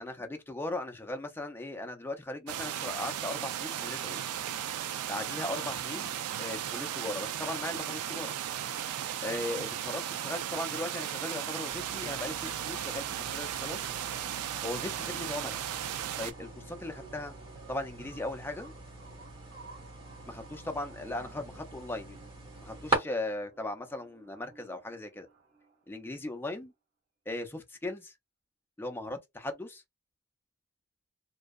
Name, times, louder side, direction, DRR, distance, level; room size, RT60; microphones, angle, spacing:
voice 1, 0.0-4.2 5.1-8.3 9.2-13.8 14.6-15.6 16.2-17.3 17.7-18.7 20.3-22.2 22.6-25.3 25.9-26.7 27.3-28.1 28.8-29.8, left 1 dB, 10° left, 0.4 m, -38 dB
sound 1, 2.5-16.3, right 10 dB, 80° right, 0.3 m, -36 dB
sound 2, 11.7-23.0, right 2 dB, 25° right, 1.1 m, -41 dB
sound 3, 12.0-26.0, right 4 dB, 55° right, 1.0 m, -57 dB
2.6 x 2.2 x 2.3 m
head